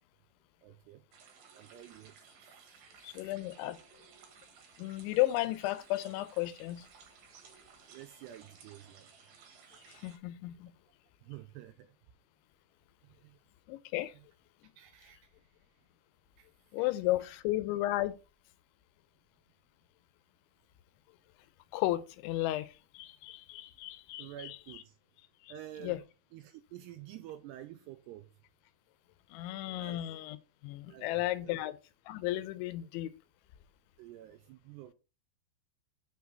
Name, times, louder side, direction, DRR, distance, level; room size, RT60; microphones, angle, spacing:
voice 1, 0.6-1.0 1.5-2.2 2.8-3.4 7.8-9.1 11.2-12.0 13.0-13.4 14.1-14.2 14.8-15.5 16.4-16.5 16.8-16.9 24.2-25.0 25.5-26.0 26.3-28.3 29.7-30.0 30.9-31.6 34.0-34.9, right 12 dB, 85° right, 2.5 m, -50 dB
sound 1, 1.1-10.2, right 6 dB, 60° right, 2.6 m, -58 dB
voice 2, 3.0-3.8 4.8-6.9 9.9-10.7 13.7-14.1 16.7-18.2 21.7-24.6 25.4-25.5 25.8-26.0 29.3-30.4 30.6-31.8 32.1-33.1, left 16 dB, 85° left, 3.0 m, -34 dB
6.5 x 4.7 x 5.2 m
omnidirectional pair, 5.3 m